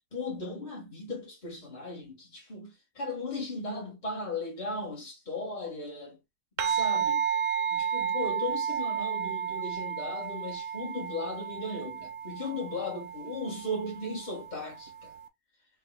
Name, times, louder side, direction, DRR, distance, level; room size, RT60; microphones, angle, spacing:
voice 1, 0.1-6.2 6.6-7.3 7.7-15.1, left 2 dB, 35° left, 2.2 m, -37 dB
sound 1, 6.6-15.3, right 8 dB, 70° right, 1.0 m, -32 dB
4.7 x 3.7 x 2.4 m
omnidirectional pair, 1.4 m